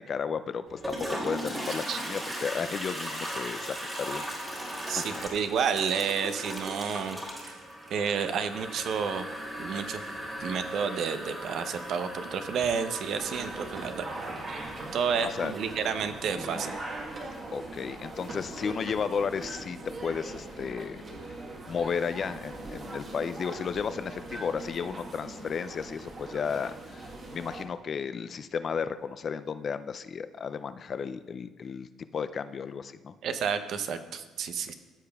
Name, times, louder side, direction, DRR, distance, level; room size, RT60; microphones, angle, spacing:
voice 1, 0.0-4.7 5.0-5.1 15.1-15.5 17.5-21.4 21.7-33.2, left 6 dB, 40° left, 12 dB, 0.3 m, -34 dB
Toilet flush, 0.7-17.4, equal, 15° right, 1.7 m, -38 dB
voice 2, 4.9-7.6 7.9-9.3 9.6-10.0 10.4-14.1 14.9-16.7 33.2-34.7, right 6 dB, 60° right, 9 dB, 0.6 m, -30 dB
sound 1, 13.2-27.7, right 2 dB, 35° right, 1.2 m, -41 dB
14.5 x 6.8 x 2.3 m, 1.3 s
cardioid pair, 105°, 0 cm